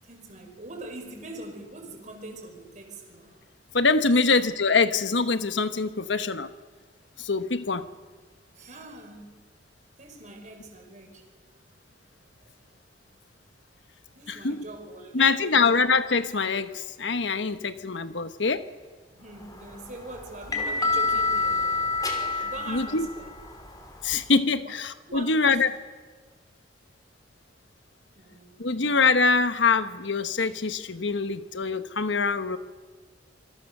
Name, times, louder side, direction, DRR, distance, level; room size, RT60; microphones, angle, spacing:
voice 1, 0.0-3.4 4.2-4.3 8.5-9.3 10.0-11.2 12.4-12.6 14.1-15.6 19.2-21.7 22.4-23.3 24.5-24.8 25.1-25.6 28.1-29.0, right 2 dB, 45° right, 4 dB, 4.9 m, -42 dB
voice 2, 3.7-6.5 7.2-7.9 14.3-14.6 15.1-18.7 22.7-23.1 24.0-25.7 28.6-32.6, left 4 dB, 85° left, 11 dB, 1.2 m, -24 dB
sound 1, 19.4-24.3, left 3 dB, 20° left, 3.3 m, -28 dB
27.0 x 24.5 x 6.7 m, 1.5 s
head